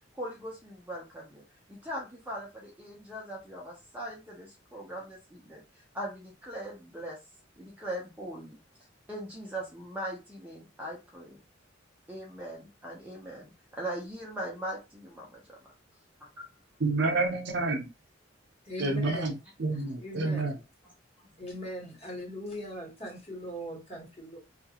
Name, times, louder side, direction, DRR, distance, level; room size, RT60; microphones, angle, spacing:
voice 1, 0.1-1.4 1.7-5.6 5.9-7.2 7.6-8.6 9.1-11.4 12.1-15.6 16.2-16.4 19.7-19.8, right 1 dB, 10° right, 0.6 m, -40 dB
voice 2, 16.8-17.9 18.8-19.3 19.6-20.5, right 3 dB, 60° right, 0.7 m, -28 dB
voice 3, 18.7-19.3 20.0-20.5 21.4-24.4, equal, 30° left, 1.2 m, -40 dB
2.8 x 2.4 x 2.8 m
head